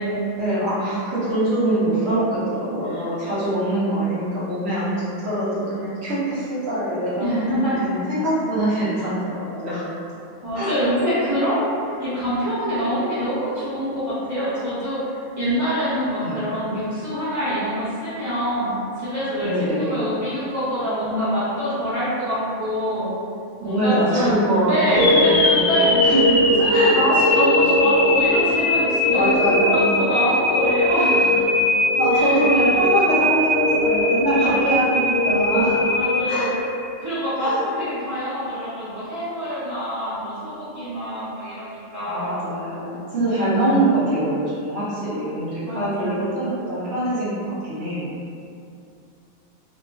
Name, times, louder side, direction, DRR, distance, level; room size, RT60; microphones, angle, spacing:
voice 1, 0.4-5.5 5.7-9.8 10.5-10.8 16.2-16.5 19.4-20.0 23.6-25.7 26.0-26.4 26.7-27.0 29.1-29.8 32.0-35.8 36.3-36.5 37.4-37.6 42.1-48.0, right 1 dB, 55° right, -11 dB, 1.1 m, -23 dB
voice 2, 7.2-7.9 10.4-23.1 23.6-24.3 24.7-26.0 26.4-31.4 32.1-32.4 34.4-34.8 35.8-36.6 37.0-42.5 43.2-43.5 45.6-46.5, equal, 15° right, -14 dB, 0.9 m, -25 dB
sound 1, 24.9-37.0, left 1 dB, 65° left, 0.8 m, -20 dB
2.9 x 2.4 x 2.4 m, 2.5 s
omnidirectional pair, 1.4 m